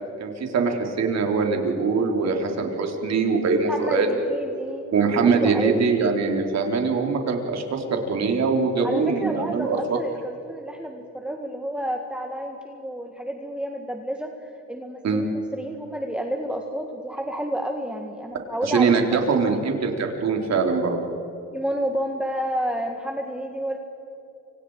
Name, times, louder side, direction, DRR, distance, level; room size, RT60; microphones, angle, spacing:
voice 1, 0.2-4.1 4.9-10.0 15.0-15.3 18.6-21.0, right 4 dB, 60° right, 2 dB, 4.0 m, -22 dB
voice 2, 3.7-4.9 5.2-5.8 8.8-19.1 19.3-19.4 21.5-23.8, equal, 5° right, 2 dB, 1.9 m, -30 dB
29.5 x 26.0 x 4.9 m, 2.9 s
cardioid pair, 90°, 30 cm